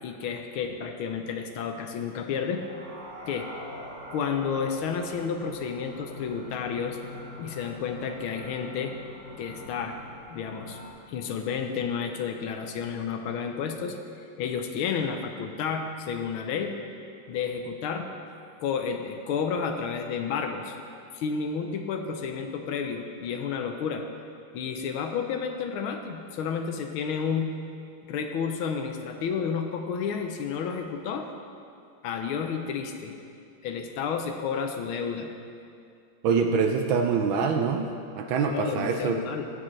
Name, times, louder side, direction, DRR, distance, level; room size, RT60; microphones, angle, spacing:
voice 1, 0.0-2.6 3.3-3.5 4.1-7.0 7.4-9.0 9.4-10.0 10.3-10.8 11.1-13.9 14.4-16.7 17.3-18.1 18.6-20.7 21.1-24.0 24.5-27.5 28.0-31.3 32.0-33.1 33.6-35.3 38.4-39.5, left 6 dB, 80° left, 5 dB, 1.6 m, -31 dB
sound 1, 2.5-10.9, left 1 dB, 45° right, 1.7 m, -44 dB
voice 2, 36.2-39.2, right 5 dB, 75° right, 4 dB, 1.4 m, -25 dB
16.0 x 7.6 x 3.2 m, 2.4 s
omnidirectional pair, 2.3 m